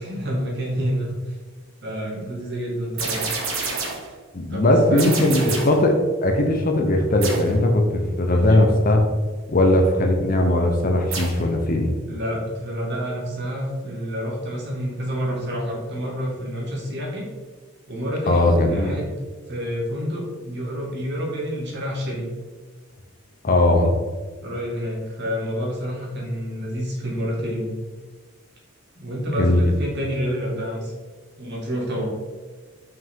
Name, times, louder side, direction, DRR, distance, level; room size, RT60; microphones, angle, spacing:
voice 1, 0.0-1.4 1.8-3.3 4.5-5.6 8.3-8.7 12.1-17.3 17.9-19.1 19.5-22.3 24.4-27.7 29.0-30.9 31.4-32.0, equal, 55° right, -3 dB, 1.9 m, -28 dB
sound 1, 3.0-4.1 5.0-5.9 7.2-7.6 11.1-11.5, right 4 dB, 85° right, 1.5 m, -28 dB
voice 2, 4.3-5.9 6.2-9.0 9.5-11.9 18.3-19.0 23.4-23.9 29.3-29.7, left 1 dB, 45° left, 3 dB, 0.8 m, -19 dB
5.8 x 5.3 x 3.6 m, 1.4 s
head